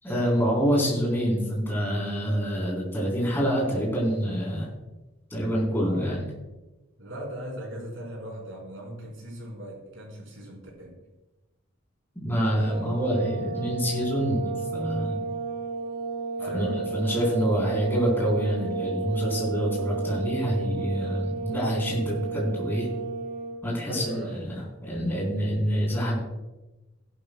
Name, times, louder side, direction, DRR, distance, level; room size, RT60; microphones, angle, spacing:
voice 1, 0.0-4.7 5.3-6.3 12.2-15.2 16.5-22.9 23.6-26.2, equal, 10° left, -4 dB, 4.1 m, -26 dB
voice 2, 5.8-6.2 7.0-11.0 16.4-17.4 23.9-24.3, right 1 dB, 70° right, -2 dB, 4.6 m, -39 dB
sound 1, 12.5-23.6, right 4 dB, 40° right, 2.1 m, -32 dB
16.5 x 11.5 x 2.4 m, 1.1 s
head